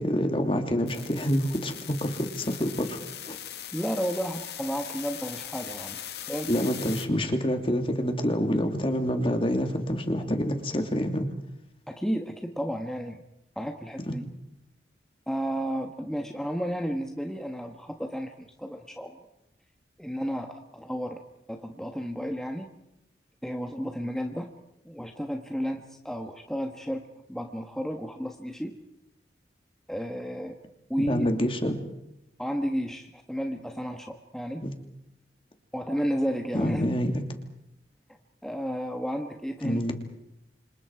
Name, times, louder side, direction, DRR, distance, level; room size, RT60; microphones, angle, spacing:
voice 1, 0.0-3.0 3.3-3.4 6.5-11.3 14.1-14.2 31.0-31.8 34.6-34.7 36.5-37.2 39.6-39.9, equal, 30° left, 5 dB, 2.9 m, -27 dB
sound 1, 0.9-7.1, left 10 dB, 65° left, 2.1 m, -40 dB
voice 2, 3.7-6.0 6.3-6.5 11.9-13.2 13.5-14.2 15.3-19.1 20.0-21.2 21.5-22.7 23.4-24.5 24.8-27.0 27.3-28.7 29.9-30.6 30.9-31.3 32.4-34.6 35.7-36.8 38.4-39.8, equal, 5° left, 3 dB, 1.3 m, -32 dB
29.5 x 26.5 x 4.8 m, 0.82 s
head